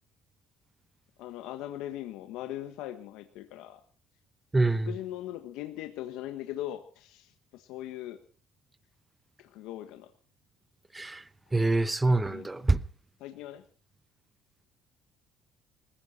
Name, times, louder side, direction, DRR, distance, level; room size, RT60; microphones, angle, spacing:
voice 1, 1.2-3.8 4.6-8.2 9.4-10.1 12.3-12.6 13.2-13.6, left 13 dB, 80° left, 1.4 m, -40 dB
voice 2, 4.5-4.9 10.9-11.2 11.5-12.8, right 2 dB, 15° right, 0.9 m, -25 dB
20.0 x 16.0 x 4.4 m
cardioid pair, 100°, 0 cm